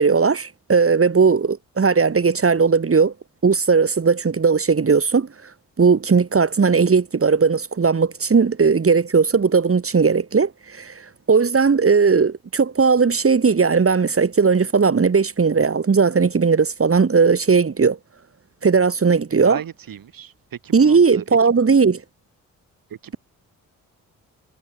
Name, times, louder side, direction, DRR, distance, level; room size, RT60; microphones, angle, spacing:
voice 1, 0.0-3.1 3.4-5.3 5.8-10.5 10.8-10.9 11.3-18.0 18.6-19.6 20.7-22.0, right 5 dB, 40° right, 2.4 m, -17 dB
voice 2, 19.4-21.2 22.9-23.2, right 9 dB, 70° right, 8.0 m, -36 dB
supercardioid pair, 50°, 36 cm